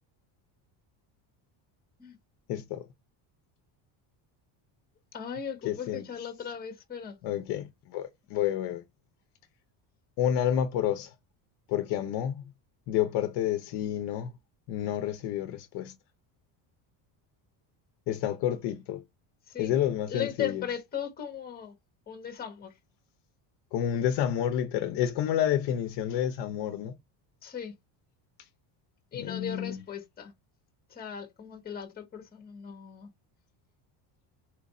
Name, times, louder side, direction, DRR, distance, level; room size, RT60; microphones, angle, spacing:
voice 1, 2.5-2.8 5.6-6.0 7.2-8.8 10.2-11.1 11.7-12.5 12.9-14.3 14.7-15.9 18.1-19.0 19.6-20.6 23.7-26.9 29.1-29.8, left 10 dB, 55° left, 0.6 m, -29 dB
voice 2, 5.1-7.2 8.3-8.5 19.5-19.7 20.1-21.7 22.1-22.8 27.4-27.7 29.1-30.3 30.9-33.1, left 8 dB, 20° left, 1.0 m, -37 dB
4.5 x 2.5 x 4.0 m
cardioid pair, 180°, 50 cm